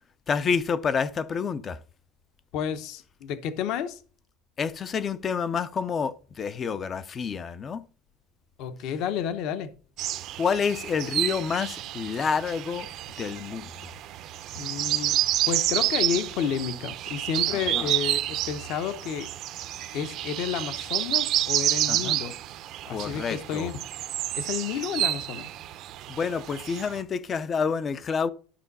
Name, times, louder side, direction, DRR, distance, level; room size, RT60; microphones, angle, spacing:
voice 1, 0.3-1.8 4.6-7.8 10.4-12.9 13.2-13.7 17.5-17.9 21.9-22.2 22.9-23.7 26.1-28.3, left 6 dB, 20° left, 0.5 m, -28 dB
voice 2, 2.5-4.0 8.6-9.7 14.5-15.2 15.5-19.3 19.9-22.3 22.9-23.8 24.4-25.5, left 8 dB, 50° left, 0.9 m, -31 dB
sound 1, 10.0-27.0, right 14 dB, 40° right, 0.6 m, -29 dB
11.5 x 6.1 x 4.0 m
cardioid pair, 170°, 0 cm